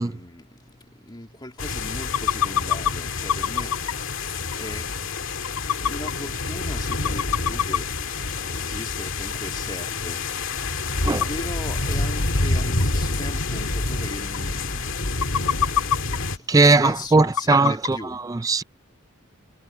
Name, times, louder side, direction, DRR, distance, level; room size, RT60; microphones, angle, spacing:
voice 1, 0.0-18.2, left 1 dB, 20° left, 2.5 m, -39 dB
sound 1, 1.6-16.4, left 3 dB, 65° left, 2.1 m, -28 dB
sound 2, 2.0-2.9 3.3-4.0 4.5-4.6 4.9-5.0 5.4-6.1 6.6-6.7 6.9-7.8 8.2-8.3 9.5-9.6 9.9-10.0 11.1-11.3 12.1-12.2 12.8-12.9 13.1-13.2 13.5-13.6 14.0-14.1 14.3-14.7 15.0-16.2 17.4-17.9, left 9 dB, 85° left, 0.5 m, -23 dB
voice 2, 16.5-18.6, right 3 dB, 15° right, 0.3 m, -19 dB
head